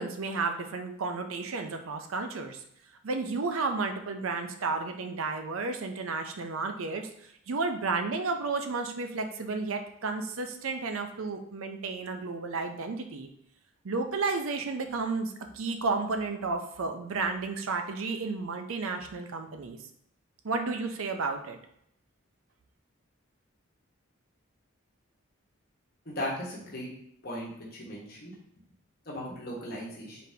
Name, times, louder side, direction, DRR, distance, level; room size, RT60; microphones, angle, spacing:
voice 1, 0.0-2.6 3.0-13.3 13.8-19.8 20.4-21.6, right 4 dB, 75° right, 6 dB, 0.5 m, -32 dB
voice 2, 26.1-26.9 27.2-28.3 29.1-30.2, equal, 45° left, -4 dB, 1.1 m, -37 dB
4.1 x 3.5 x 2.7 m, 0.72 s
head